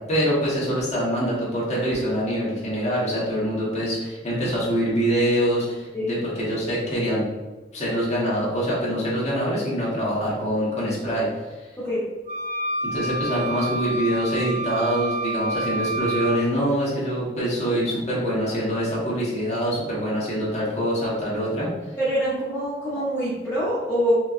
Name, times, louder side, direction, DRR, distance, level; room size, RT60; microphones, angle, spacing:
voice 1, 0.1-7.3 7.7-11.3 12.8-21.7, equal, 40° left, -7 dB, 1.1 m, -24 dB
voice 2, 11.8-12.1 22.0-24.1, equal, 15° left, -9 dB, 0.6 m, -25 dB
sound 1, 12.3-16.4, right 1 dB, 45° right, 0.4 m, -28 dB
4.3 x 2.2 x 2.4 m, 1.2 s
head